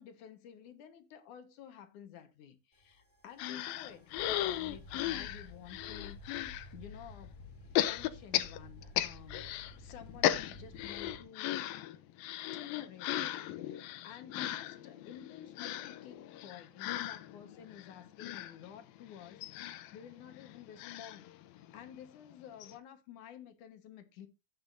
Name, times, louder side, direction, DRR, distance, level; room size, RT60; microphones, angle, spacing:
voice 1, 0.0-6.2 6.7-7.3 7.9-9.5 9.8-11.6 12.5-24.3, left 9 dB, 65° left, 2.4 m, -52 dB
sound 1, 2.7-11.2, left 2 dB, 10° left, 1.6 m, -52 dB
sound 2, 3.4-6.7 7.7-9.7 10.0-21.9 22.3-22.4 22.6-22.7, left 13 dB, 80° left, 2.5 m, -36 dB
14.5 x 8.7 x 2.6 m
omnidirectional pair, 4.3 m